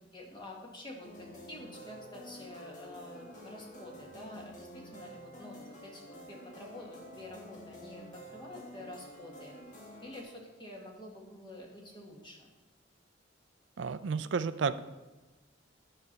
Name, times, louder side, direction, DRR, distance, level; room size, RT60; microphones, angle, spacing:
voice 1, 0.0-9.6 10.0-12.5, left 1 dB, 25° left, 0 dB, 1.6 m, -48 dB
sound 1, 1.0-10.2, equal, 40° left, 1.5 m, -50 dB
voice 2, 13.8-14.8, right 5 dB, 70° right, 14 dB, 0.4 m, -31 dB
9.5 x 4.4 x 6.6 m, 1.2 s
head